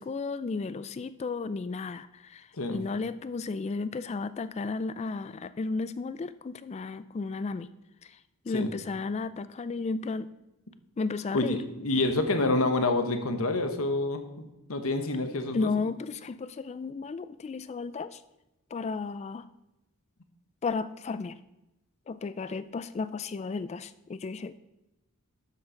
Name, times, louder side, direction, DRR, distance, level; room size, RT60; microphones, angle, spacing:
voice 1, 0.0-7.7 8.5-10.3 11.0-11.6 15.5-18.2 18.7-19.4 20.6-21.4 22.1-24.6, left 4 dB, 30° left, 15 dB, 0.3 m, -33 dB
voice 2, 11.3-14.2 14.7-15.7, left 2 dB, 70° left, 7 dB, 1.2 m, -27 dB
12.0 x 7.0 x 5.1 m, 0.93 s
head